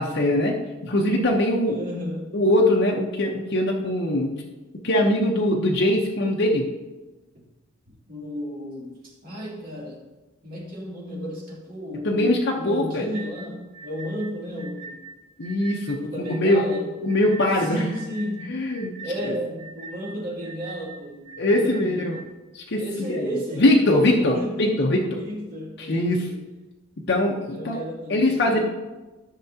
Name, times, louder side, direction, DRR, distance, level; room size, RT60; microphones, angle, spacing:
voice 1, 0.0-1.8 2.3-4.4 4.8-6.7 12.0-13.1 15.4-16.6 17.0-17.9 18.5-18.9 19.2-19.3 21.4-22.2 22.5-23.3 23.6-25.0 25.8-26.2 27.1-27.8 28.1-28.6, left 1 dB, 55° left, -1 dB, 0.8 m, -22 dB
voice 2, 1.7-2.4 7.3-7.4 7.9-10.1 10.4-15.0 15.9-16.9 17.6-18.6 19.0-22.2 22.8-26.4 27.5-28.6, equal, 45° right, -5 dB, 2.6 m, -33 dB
sound 1, 13.1-22.3, right 3 dB, 5° left, 1.3 m, -43 dB
14.0 x 5.8 x 2.8 m, 1.1 s
head